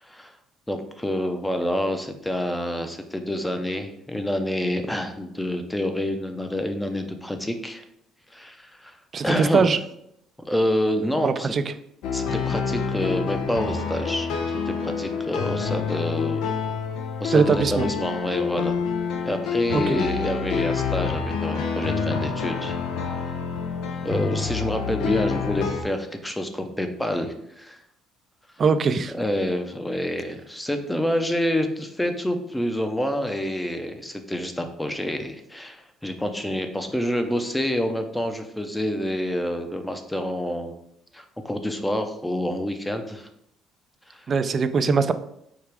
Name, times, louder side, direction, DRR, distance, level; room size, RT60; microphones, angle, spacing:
voice 1, 0.7-7.8 8.3-9.0 9.2-9.7 10.4-11.5 12.1-16.4 17.2-18.8 19.3-22.7 24.0-27.8 29.1-40.7 41.1-43.3 44.1-44.3, left 1 dB, 10° left, 7 dB, 0.6 m, -27 dB
voice 2, 9.1-9.8 11.2-11.6 17.3-17.9 19.7-20.0 28.6-29.1 44.3-45.1, right 5 dB, 40° right, 11 dB, 0.4 m, -21 dB
sound 1, 12.0-25.8, left 5 dB, 75° left, 0.5 m, -27 dB
4.7 x 2.4 x 4.6 m, 0.75 s
supercardioid pair, 85°, 0 cm